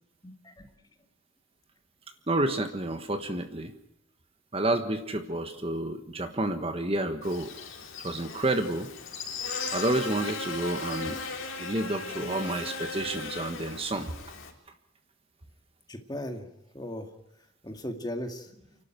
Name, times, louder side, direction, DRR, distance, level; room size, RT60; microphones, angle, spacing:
voice 1, 0.2-0.7 12.0-12.3 15.9-16.5 16.7-17.1 17.6-18.7, left 1 dB, 20° left, 4 dB, 2.2 m, -38 dB
voice 2, 2.3-3.7 4.5-7.5 8.0-8.9 9.7-11.2 11.6-14.1, right 1 dB, 30° right, 7 dB, 1.3 m, -30 dB
Buzz, 7.2-14.5, left 4 dB, 80° left, 3.8 m, -37 dB
29.0 x 12.5 x 9.2 m, 0.81 s
head